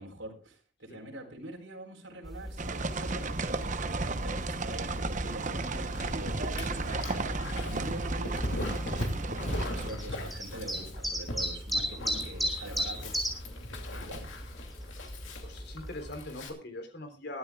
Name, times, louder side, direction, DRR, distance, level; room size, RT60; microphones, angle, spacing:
voice 1, 0.0-9.2 9.7-13.2 13.9-14.4, right 2 dB, 85° right, 0 dB, 4.3 m, -44 dB
sound 1, 2.2-16.1, equal, ahead, 3.6 m, -38 dB
sound 2, 2.6-9.9, right 3 dB, 40° right, 1.0 m, -33 dB
Dog, 5.9-16.5, left 1 dB, 90° left, 2.7 m, -40 dB
voice 2, 15.4-17.4, left 1 dB, 60° left, 5 dB, 3.5 m, -42 dB
22.0 x 12.5 x 2.4 m, 0.35 s
head